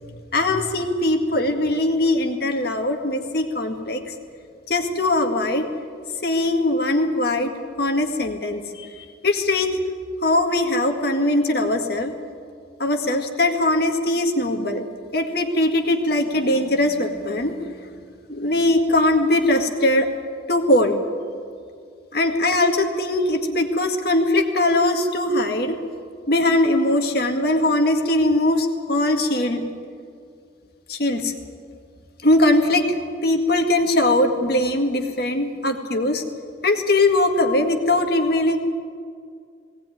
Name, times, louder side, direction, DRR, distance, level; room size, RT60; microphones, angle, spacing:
voice 1, 0.3-4.0 4.7-5.7 6.2-7.5 7.8-9.8 10.2-12.1 12.8-14.9 15.1-17.5 18.3-20.1 20.5-21.0 22.1-25.8 26.3-29.6 30.9-31.3 32.2-33.0 33.2-36.2 36.6-38.6, left 1 dB, 55° left, 4 dB, 1.9 m, -21 dB
19.5 x 18.0 x 9.4 m, 2.2 s
head